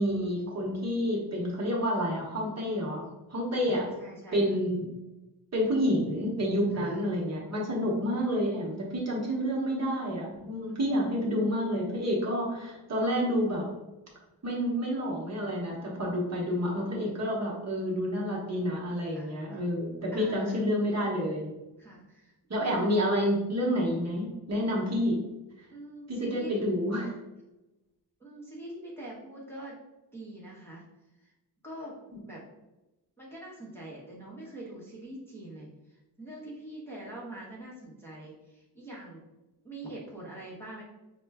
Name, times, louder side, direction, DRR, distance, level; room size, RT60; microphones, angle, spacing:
voice 1, 0.0-3.0 3.3-3.8 4.3-4.9 5.5-13.6 14.4-21.5 22.5-25.2 26.1-27.1, equal, 40° right, -3 dB, 0.9 m, -29 dB
voice 2, 3.7-4.6 6.7-7.0 7.4-7.9 10.7-11.0 16.5-16.7 19.0-19.6 20.1-20.6 21.8-22.8 25.7-26.6 28.2-29.8 30.1-30.8 31.2-31.3 31.6-32.4 33.2-39.2 39.6-40.8, right 1 dB, 5° left, -6 dB, 0.8 m, -44 dB
5.4 x 2.2 x 3.4 m, 1.0 s
wide cardioid pair, 170°, 42 cm